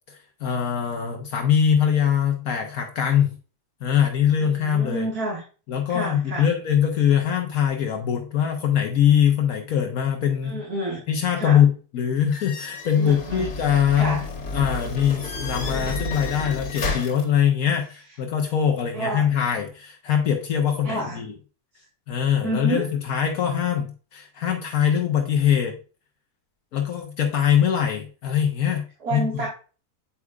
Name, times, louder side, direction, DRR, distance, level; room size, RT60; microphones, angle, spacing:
voice 1, 0.1-3.3 3.8-5.1 5.7-10.6 11.1-14.2 14.5-21.3 22.1-25.8 26.7-28.8 29.1-29.5, left 8 dB, 70° left, 3 dB, 1.2 m, -22 dB
voice 2, 4.4-5.4 5.9-6.5 10.4-11.0 11.4-11.6 13.0-13.5 13.9-14.2 18.9-19.2 20.8-21.2 22.4-22.8 29.0-29.5, right 2 dB, 75° right, -5 dB, 2.5 m, -29 dB
sound 1, 12.3-17.2, left 3 dB, 85° left, 1.9 m, -31 dB
8.5 x 4.7 x 2.3 m, 0.36 s
omnidirectional pair, 1.6 m